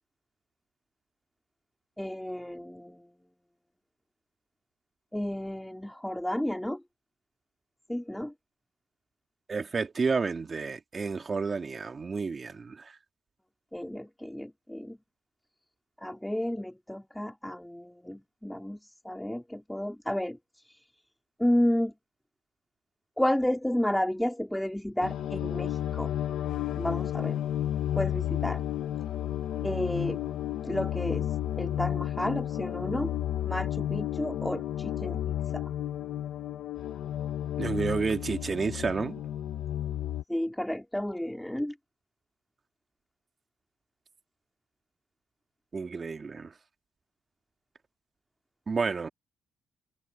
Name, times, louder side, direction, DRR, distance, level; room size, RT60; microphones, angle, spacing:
voice 1, 2.0-3.1 5.1-6.8 7.9-8.3 13.7-15.0 16.0-18.8 19.1-20.4 20.7-20.8 21.4-21.9 23.2-26.1 26.7-27.4 28.0-28.6 29.6-30.2 30.6-31.3 31.6-35.7 40.3-41.7, left 1 dB, 5° left, 3.4 m, -31 dB
voice 2, 9.5-12.9 37.6-39.2 45.7-46.5 48.7-49.1, right 4 dB, 35° right, 2.7 m, -30 dB
sound 1, 25.0-40.2, left 11 dB, 75° left, 2.5 m, -32 dB
cardioid pair, 90°, 0 cm